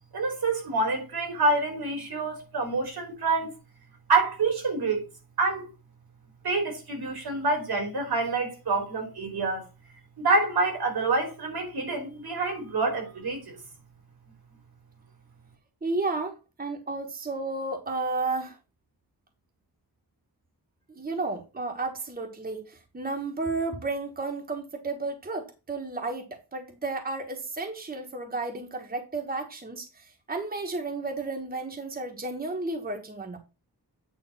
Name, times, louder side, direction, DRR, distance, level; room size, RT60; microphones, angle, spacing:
voice 1, 0.1-3.5 4.1-5.1 5.4-5.7 6.4-9.7 10.2-13.6, right 3 dB, 90° right, 3.6 m, -27 dB
voice 2, 15.8-18.6 21.0-33.4, right 3 dB, 25° right, 1.3 m, -32 dB
9.0 x 3.5 x 5.7 m
wide cardioid pair, 160°, 37 cm